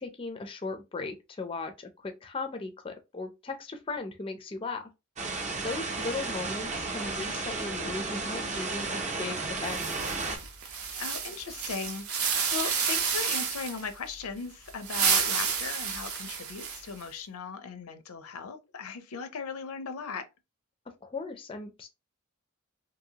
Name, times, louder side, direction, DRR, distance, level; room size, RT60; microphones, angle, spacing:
voice 1, 0.0-4.9 5.6-10.1 21.0-21.9, left 3 dB, 25° left, 0.4 m, -37 dB
sound 1, 5.2-10.4, right 3 dB, 35° right, 0.7 m, -33 dB
sound 2, 9.7-13.9 14.7-17.0, right 6 dB, 75° right, 0.7 m, -30 dB
voice 2, 11.0-20.2, left 5 dB, 85° left, 0.5 m, -38 dB
2.7 x 2.6 x 2.7 m
head